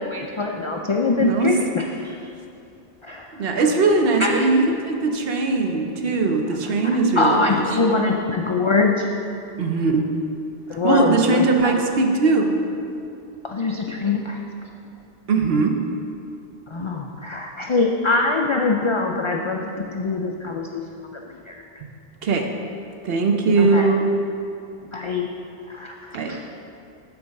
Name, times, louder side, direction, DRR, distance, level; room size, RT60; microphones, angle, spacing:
voice 1, 0.0-2.1 3.0-3.6 4.2-4.4 6.6-9.1 10.7-11.8 13.4-14.7 16.7-21.6 23.5-23.9 24.9-25.3 25.7-26.4, left 3 dB, 55° left, 1 dB, 0.3 m, -24 dB
voice 2, 1.2-1.5 3.3-7.6 9.6-10.1 10.8-12.5 15.3-15.8 22.2-22.5 23.0-24.1 26.1-26.3, right 3 dB, 65° right, 3 dB, 1.0 m, -20 dB
7.0 x 4.7 x 6.4 m, 2.5 s
omnidirectional pair, 1.1 m